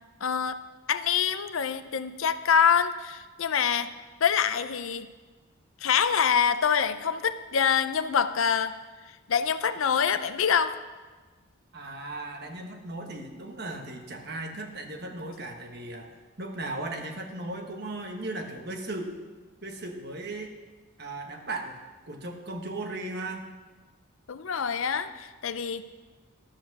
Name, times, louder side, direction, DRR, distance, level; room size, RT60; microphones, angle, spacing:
voice 1, 0.2-0.6 0.9-3.9 4.2-5.1 5.8-8.7 9.3-10.7 24.3-26.0, left 7 dB, 75° left, 12 dB, 0.6 m, -25 dB
voice 2, 11.7-19.1 19.6-20.6 21.0-21.8 22.1-23.5, right 2 dB, 50° right, 3 dB, 1.4 m, -37 dB
12.0 x 8.1 x 6.1 m, 1.3 s
head